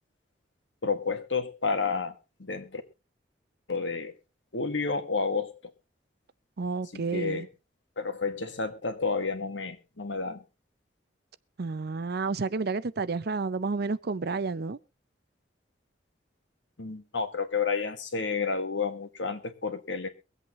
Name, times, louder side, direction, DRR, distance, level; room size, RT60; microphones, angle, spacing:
voice 1, 0.8-2.1 2.4-2.8 3.7-4.1 4.5-5.7 6.9-7.5 8.0-10.4 16.8-20.1, left 4 dB, 85° left, 1.7 m, -30 dB
voice 2, 6.6-7.5 11.6-14.8, right 4 dB, 60° right, 0.6 m, -30 dB
23.5 x 8.1 x 3.1 m
head